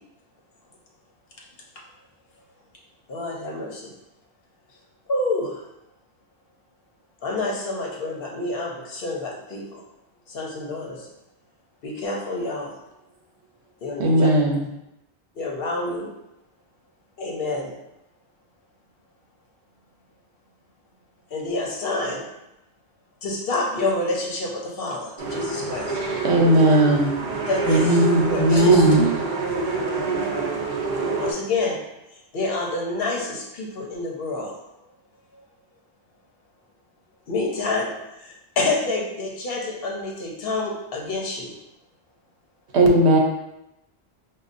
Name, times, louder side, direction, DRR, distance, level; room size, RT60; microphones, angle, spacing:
voice 1, 3.1-3.9 5.1-5.6 7.2-9.8 10.3-11.1 11.8-12.7 13.8-14.3 15.4-16.1 17.2-17.7 21.3-22.2 23.2-26.0 27.5-27.6 28.3-28.7 31.2-31.8 32.3-34.5 35.3-35.4 37.3-37.9 38.2-41.5, left 2 dB, 65° left, -1 dB, 0.9 m, -28 dB
voice 2, 14.0-14.6 26.2-27.2 42.7-43.2, right 1 dB, 85° right, 1 dB, 0.9 m, -17 dB
sound 1, 25.2-31.3, right 4 dB, 55° right, 0.7 m, -26 dB
voice 3, 27.6-29.1, right 1 dB, 25° left, -4 dB, 0.7 m, -17 dB
5.1 x 2.3 x 2.5 m, 0.88 s
omnidirectional pair, 1.1 m